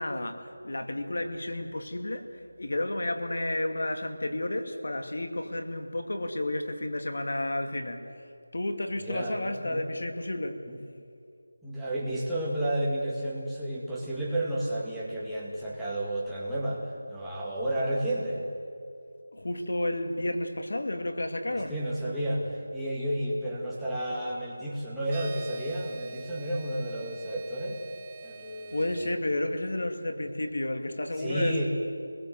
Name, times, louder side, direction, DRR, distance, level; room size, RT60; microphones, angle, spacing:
voice 1, 0.0-2.3 2.6-8.0 8.5-10.6 19.3-21.8 28.7-31.7, left 1 dB, 65° left, 6 dB, 2.4 m, -31 dB
voice 2, 9.0-9.8 10.7-10.8 11.6-18.5 21.5-27.8 28.2-28.8 31.2-31.7, right 1 dB, ahead, -10 dB, 2.2 m, -31 dB
sound 1, 25.1-29.1, right 5 dB, 20° right, 0.9 m, -46 dB
27.0 x 21.0 x 7.8 m, 2.4 s
figure-of-eight pair, 175°, 0 cm